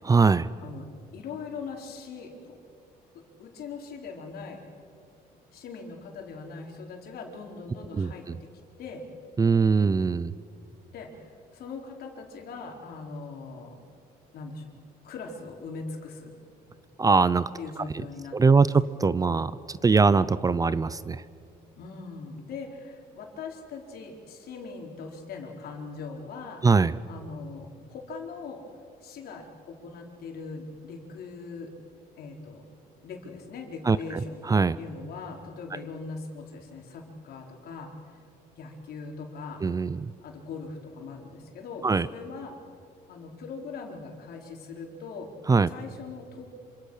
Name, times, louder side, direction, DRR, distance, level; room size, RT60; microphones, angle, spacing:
voice 1, 0.0-0.5 7.9-8.4 9.4-10.3 17.0-17.5 17.8-18.0 18.3-21.2 26.6-27.0 33.9-34.8 39.6-40.1 41.8-42.1 45.5-45.7, right 4 dB, 20° right, 17 dB, 0.6 m, -22 dB
voice 2, 1.1-2.6 3.1-4.6 5.5-8.3 8.8-9.0 10.9-13.8 14.3-14.7 15.0-16.3 17.6-18.6 21.8-26.7 27.1-28.6 29.0-31.7 32.2-32.6 33.0-34.4 34.8-37.9 38.6-39.9 40.2-42.6 43.1-45.3 45.7-46.4, left 4 dB, 65° left, 1 dB, 4.5 m, -40 dB
27.0 x 26.0 x 6.6 m, 2.4 s
cardioid pair, 110°, 17 cm